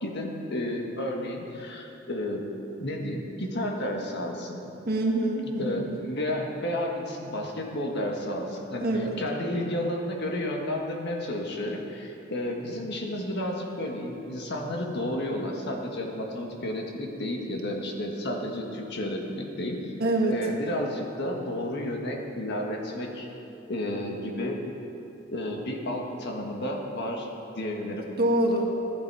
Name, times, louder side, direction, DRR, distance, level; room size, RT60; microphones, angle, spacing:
voice 1, 0.0-2.4 2.8-4.7 5.6-19.9 20.3-23.3 23.7-24.6 25.3-27.3 27.5-28.1, left 1 dB, 55° left, 1 dB, 1.6 m, -32 dB
voice 2, 4.9-6.0 8.8-9.2 20.0-20.3 28.2-28.7, right 1 dB, 50° right, 0 dB, 1.7 m, -25 dB
15.0 x 11.5 x 4.8 m, 2.9 s
head